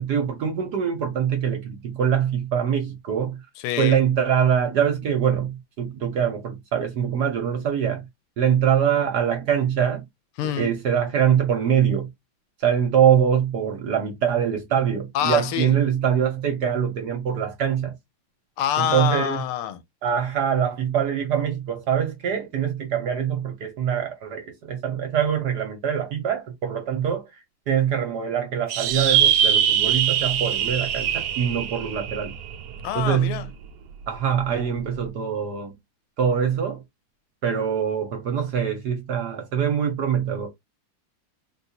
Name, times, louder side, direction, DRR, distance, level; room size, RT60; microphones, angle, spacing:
voice 1, 0.0-3.4 3.8-8.1 8.4-10.0 10.4-12.1 12.6-17.9 18.8-19.5 20.0-27.3 27.7-32.3 32.9-33.4 34.1-35.7 36.2-36.8 37.4-40.5, right 8 dB, 60° right, 1.1 m, -23 dB
voice 2, 3.6-4.0 10.4-10.7 15.1-15.7 18.6-19.8 32.8-33.5, left 11 dB, 85° left, 1.5 m, -26 dB
sound 1, 28.7-33.4, right 9 dB, 85° right, 0.9 m, -23 dB
3.9 x 2.3 x 2.7 m
omnidirectional pair, 2.4 m